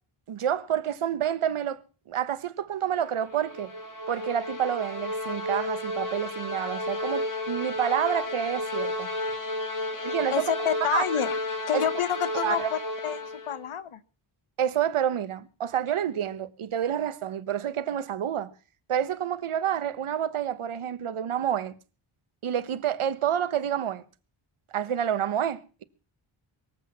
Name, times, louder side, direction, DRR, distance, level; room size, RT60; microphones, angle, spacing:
voice 1, 0.3-1.8 2.1-3.7 4.1-9.1 10.0-11.0 11.7-11.9 12.3-12.7 14.6-18.5 18.9-21.7 22.4-24.0 24.7-25.8, right 9 dB, 85° right, 1.2 m, -28 dB
sound 1, 3.1-13.7, left 1 dB, 40° left, 3.7 m, -32 dB
voice 2, 10.0-11.4 11.7-14.0, left 9 dB, 85° left, 1.3 m, -29 dB
23.0 x 8.0 x 7.3 m
wide cardioid pair, 160°, 49 cm